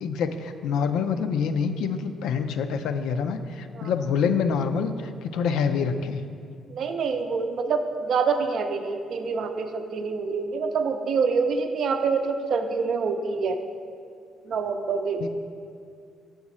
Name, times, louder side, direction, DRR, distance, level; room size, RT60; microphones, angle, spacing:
voice 1, 0.0-4.9 5.2-6.2 15.2-15.3, left 6 dB, 85° left, 8 dB, 0.4 m, -26 dB
voice 2, 6.7-13.6 14.5-15.3, right 5 dB, 60° right, 7 dB, 0.5 m, -26 dB
7.0 x 4.9 x 4.2 m, 2.3 s
cardioid pair, 90°, 0 cm